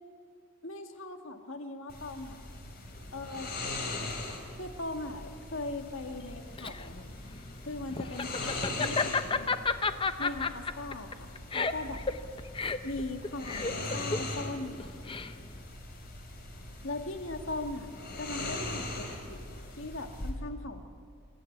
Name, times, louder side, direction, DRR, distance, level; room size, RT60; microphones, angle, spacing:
voice 1, 0.6-2.4 3.1-3.5 4.5-7.4 7.7-9.6 10.2-12.0 12.8-14.8 16.8-17.9 18.2-20.8, left 2 dB, 65° left, 5 dB, 1.9 m, -39 dB
sound 1, 1.9-20.3, left 2 dB, 45° left, 3.8 m, -40 dB
Laughter, 6.2-15.6, left 4 dB, 25° left, 0.7 m, -32 dB
25.5 x 14.5 x 9.3 m, 2.1 s
head